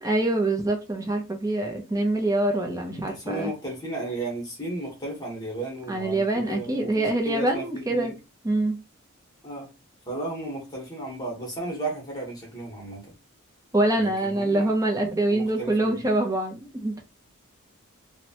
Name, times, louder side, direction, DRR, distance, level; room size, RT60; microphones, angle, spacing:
voice 1, 0.0-3.5 5.9-8.1 8.4-8.8 13.7-17.0, right 2 dB, 15° right, 0.5 m, -25 dB
voice 2, 2.9-8.2 9.4-9.7 10.1-13.0 13.9-14.7 15.3-16.0, right 2 dB, 15° left, 1.0 m, -34 dB
2.9 x 2.1 x 2.7 m
head